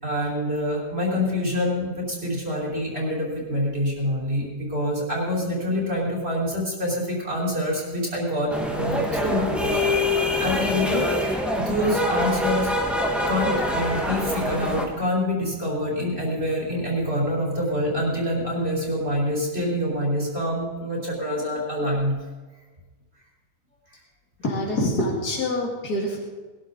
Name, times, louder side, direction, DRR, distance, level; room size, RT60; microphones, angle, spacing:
voice 1, 0.0-12.7 13.2-22.1, left 1 dB, 40° right, -4 dB, 5.1 m, -26 dB
sound 1, 8.5-14.8, left 1 dB, ahead, 1.6 m, -25 dB
voice 2, 24.4-26.2, left 1 dB, 80° left, -3 dB, 2.9 m, -25 dB
21.5 x 12.5 x 4.1 m, 1.3 s
omnidirectional pair, 1.6 m